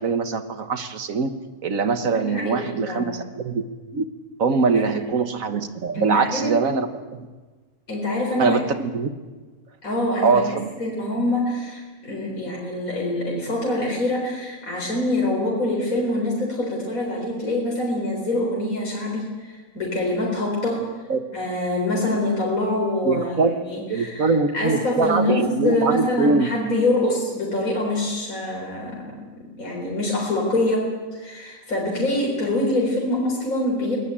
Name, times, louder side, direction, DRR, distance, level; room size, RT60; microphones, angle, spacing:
voice 1, 0.0-1.3 1.6-3.6 3.9-4.1 4.4-7.3 8.4-9.1 10.2-10.7 21.1-21.2 23.0-23.6 23.9-26.5, right 4 dB, 65° right, 9 dB, 1.7 m, -22 dB
voice 2, 1.9-3.1 4.7-4.9 5.9-6.5 7.9-8.6 9.8-20.9 21.3-23.3 23.7-24.3 24.5-34.0, left 1 dB, 70° left, -2 dB, 4.7 m, -25 dB
23.0 x 19.5 x 8.8 m, 1.3 s
omnidirectional pair, 1.5 m